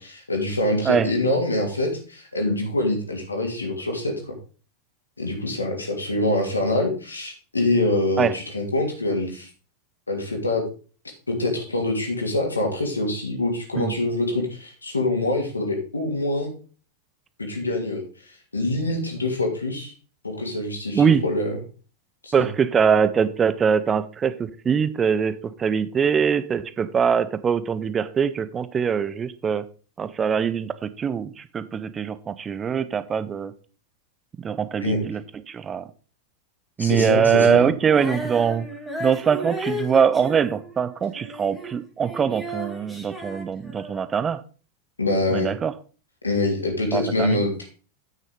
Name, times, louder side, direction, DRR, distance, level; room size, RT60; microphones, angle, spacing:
voice 1, 0.0-4.3 5.2-9.5 10.1-10.6 11.3-16.5 17.4-18.0 18.5-19.9 20.2-21.6 22.2-22.3 34.8-35.1 36.8-37.7 45.0-45.5 46.2-47.7, left 2 dB, 80° left, 2.7 m, -25 dB
voice 2, 22.3-29.6 30.0-33.5 34.4-35.2 35.5-35.9 36.8-38.7 39.0-44.4 45.3-45.7 46.9-47.4, right 7 dB, 20° right, 0.6 m, -22 dB
Female singing, 37.9-41.8 42.0-44.1, right 1 dB, ahead, 3.0 m, -34 dB
9.4 x 6.4 x 5.0 m
figure-of-eight pair, 90°, 0 cm